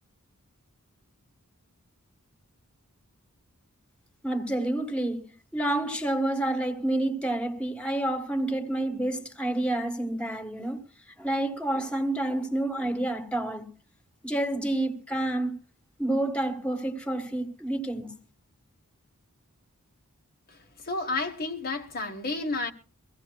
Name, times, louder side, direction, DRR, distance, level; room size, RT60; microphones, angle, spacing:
voice 1, 4.2-10.8 11.2-13.7 14.2-15.6 16.0-18.1, right 1 dB, 5° left, 1.5 m, -29 dB
voice 2, 20.5-22.7, left 3 dB, 45° left, 1.3 m, -31 dB
24.0 x 16.0 x 2.3 m
head